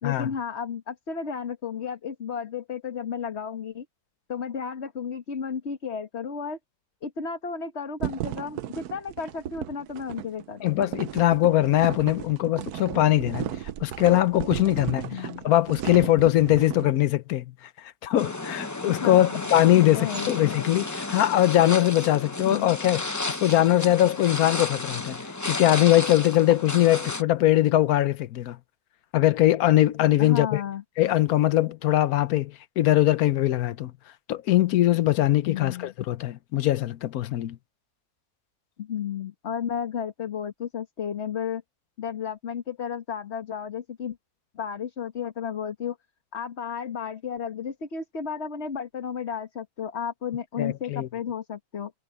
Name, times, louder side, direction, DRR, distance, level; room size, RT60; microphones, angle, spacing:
voice 1, 0.0-3.8 4.3-6.6 7.0-10.6 15.1-15.5 19.0-19.5 19.7-20.4 22.5-22.7 30.2-30.8 35.5-35.9 38.8-41.6 42.0-44.2 44.5-46.0 46.3-51.9, left 7 dB, 45° left, 1.7 m, -33 dB
sound 1, 8.0-16.9, right 11 dB, 85° right, 1.2 m, -35 dB
voice 2, 10.6-25.2 25.4-28.6 29.1-30.6 31.0-33.9 34.3-37.6 50.6-51.1, left 14 dB, 75° left, 1.2 m, -22 dB
sound 2, 18.2-27.2, left 2 dB, 20° left, 0.6 m, -33 dB
omnidirectional pair, 1.6 m